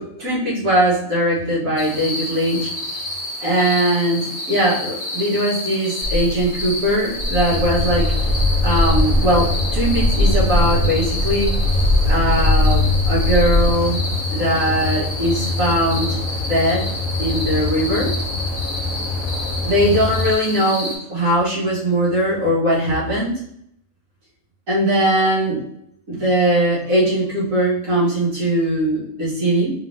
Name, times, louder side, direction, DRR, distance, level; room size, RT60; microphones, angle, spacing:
voice 1, 0.0-2.7 3.4-8.1 8.6-14.0 14.3-16.1 16.5-16.9 17.2-18.1 19.6-23.3 24.7-25.6 26.1-29.7, right 1 dB, 80° right, -7 dB, 2.1 m, -20 dB
sound 1, 1.8-20.9, left 1 dB, 30° left, 1.0 m, -30 dB
Walk footsteps, 6.0-13.7, left 1 dB, 40° right, 1.8 m, -20 dB
sound 2, 7.5-20.3, left 3 dB, 80° left, 1.0 m, -25 dB
4.2 x 3.4 x 2.6 m, 0.73 s
omnidirectional pair, 1.4 m